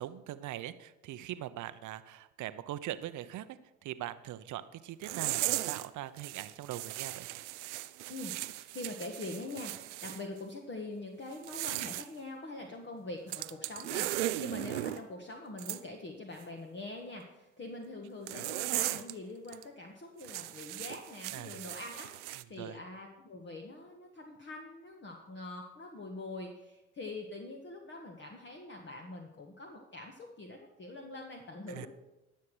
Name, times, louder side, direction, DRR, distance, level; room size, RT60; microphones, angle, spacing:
voice 1, 0.0-7.3 21.3-21.6 22.3-22.8 31.7-31.9, right 13 dB, 60° right, 13 dB, 0.8 m, -42 dB
sound 1, 5.0-5.9 6.2-10.2 11.3-12.1 13.3-15.0 15.6-15.8 18.3-19.1 19.5-19.6 20.2-22.4, right 16 dB, 90° right, 0.5 m, -37 dB
voice 2, 8.1-31.9, left 2 dB, 30° left, 1 dB, 1.7 m, -44 dB
13.5 x 6.6 x 6.2 m, 0.98 s
hypercardioid pair, 65°, 35 cm